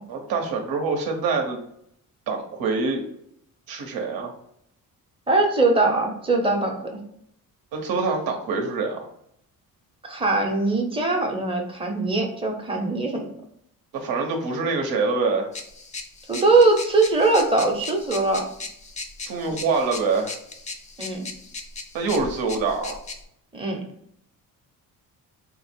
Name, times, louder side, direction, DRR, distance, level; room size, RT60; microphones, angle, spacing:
voice 1, 0.1-1.6 2.3-3.1 3.7-4.3 7.7-9.0 13.9-15.5 19.3-20.4 21.9-23.0, right 4 dB, 80° right, 2 dB, 1.0 m, -25 dB
voice 2, 5.3-6.9 10.0-13.3 16.3-18.5 21.0-21.3 23.5-23.8, right 3 dB, 15° right, 1 dB, 0.7 m, -21 dB
sound 1, 15.5-23.2, left 3 dB, 20° left, 0.4 m, -38 dB
3.9 x 2.0 x 4.3 m, 0.71 s
cardioid pair, 150°, 35 cm